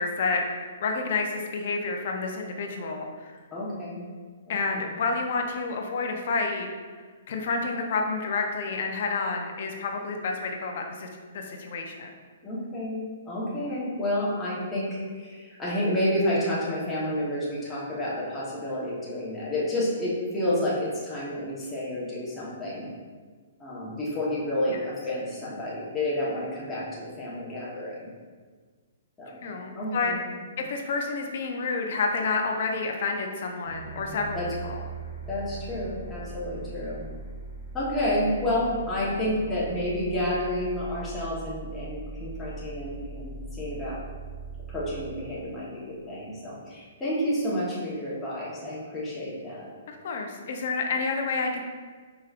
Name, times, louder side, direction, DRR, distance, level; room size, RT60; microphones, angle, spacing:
voice 1, 0.0-3.3 4.5-6.7 7.3-12.1 24.7-24.8 29.4-30.1 30.6-34.4 34.6-34.8 49.9-51.6, left 4 dB, 55° left, 2 dB, 0.6 m, -29 dB
voice 2, 3.5-4.1 4.5-4.8 12.4-22.9 23.6-28.1 29.2-29.5 29.7-30.2 34.3-34.5 35.3-37.0 37.7-44.0 44.7-49.7, left 1 dB, 10° left, -9 dB, 1.0 m, -30 dB
sound 1, 33.6-46.4, right 3 dB, 75° left, 1.2 m, -40 dB
4.8 x 3.0 x 2.4 m, 1.5 s
hypercardioid pair, 150°, 0 cm